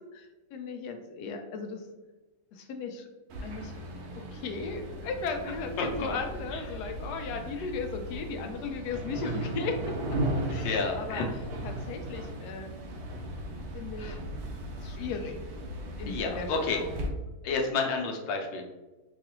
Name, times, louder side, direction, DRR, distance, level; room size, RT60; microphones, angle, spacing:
voice 1, 0.0-1.8 2.5-3.1 3.4-3.7 4.2-9.8 10.5-11.2 11.6-12.7 13.7-14.1 14.8-15.4 16.0-16.9, left 4 dB, 75° left, 5 dB, 1.1 m, -36 dB
sound 1, 3.3-17.1, right 1 dB, 70° right, 1.1 m, -37 dB
voice 2, 5.8-6.1 6.5-6.6 7.6-7.7 10.6-11.3 14.0-14.2 15.0-15.1 16.1-16.8 17.4-18.6, left 4 dB, 90° left, 2 dB, 1.4 m, -31 dB
4.8 x 2.3 x 2.9 m, 1.1 s
omnidirectional pair, 1.9 m